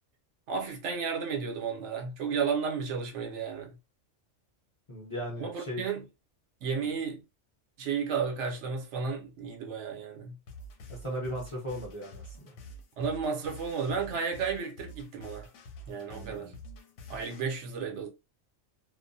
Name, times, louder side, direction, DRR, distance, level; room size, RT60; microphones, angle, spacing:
voice 1, 0.5-3.8 5.4-6.1 6.6-7.2 7.8-10.4 13.0-15.5 15.9-16.5 17.1-18.1, right 5 dB, 70° right, 0.9 m, -33 dB
voice 2, 4.9-5.8 6.8-6.9 10.9-12.5 16.1-16.6, equal, 30° left, 0.6 m, -38 dB
sound 1, 10.5-17.4, equal, 75° left, 0.9 m, -48 dB
2.3 x 2.1 x 2.5 m
omnidirectional pair, 1.3 m